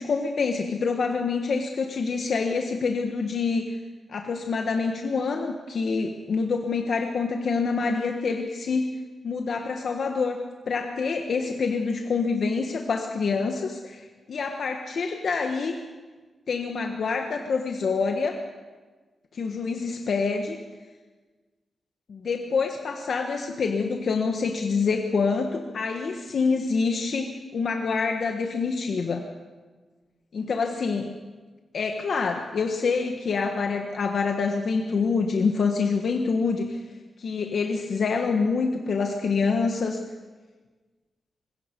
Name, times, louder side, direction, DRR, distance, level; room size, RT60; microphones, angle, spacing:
voice 1, 0.0-3.8 4.1-8.9 9.2-10.4 10.7-15.8 16.5-18.4 19.3-20.6 22.1-29.2 30.3-31.2 31.7-36.8 37.2-40.0, left 4 dB, 60° left, 3 dB, 1.5 m, -26 dB
25.0 x 21.0 x 5.4 m, 1.3 s
wide cardioid pair, 135°, 0 cm